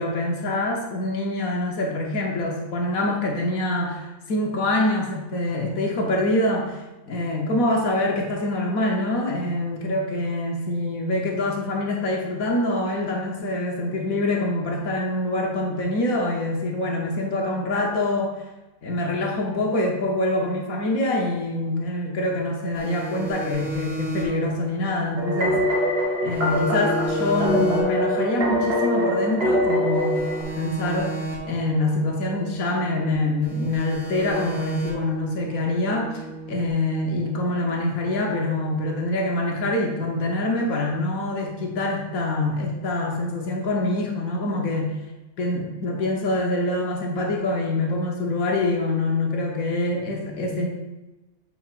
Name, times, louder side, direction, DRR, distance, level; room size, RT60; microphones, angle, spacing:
voice 1, 0.0-6.8 7.1-18.3 18.8-25.6 26.2-30.2 30.5-31.2 31.4-36.1 36.5-44.9 45.4-50.7, left 2 dB, 85° left, 0 dB, 1.4 m, -25 dB
sound 1, 22.7-26.0 26.3-29.6 29.9-33.1 33.4-36.7, right 3 dB, 65° right, 1.8 m, -34 dB
sound 2, 25.2-30.4, left 1 dB, 50° right, 1.1 m, -23 dB
8.5 x 5.7 x 2.5 m, 1.1 s
omnidirectional pair, 1.4 m